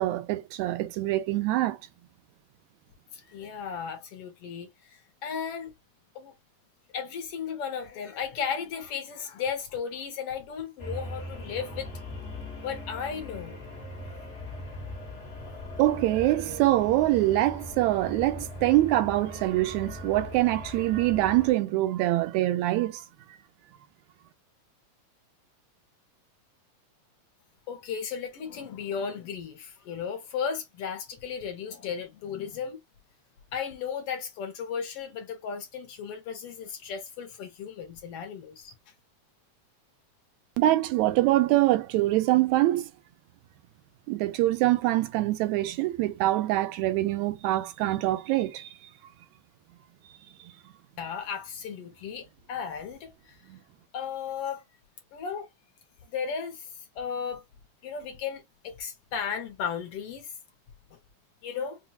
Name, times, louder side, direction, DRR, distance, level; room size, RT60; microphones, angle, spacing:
voice 1, 0.0-1.8 15.8-23.0 40.6-42.9 44.1-48.7 53.5-53.6, right 16 dB, 80° right, 1.8 m, -24 dB
voice 2, 3.1-5.7 6.1-6.3 6.9-11.9 12.6-13.6 15.4-15.6 27.7-32.8 33.5-38.7 51.0-53.4 53.9-54.6 55.1-55.5 56.1-57.4 57.8-60.3 61.4-61.8, left 7 dB, 70° left, 1.5 m, -35 dB
sound 1, 10.8-21.5, left 1 dB, 50° left, 0.8 m, -40 dB
5.4 x 2.2 x 2.8 m
omnidirectional pair, 3.3 m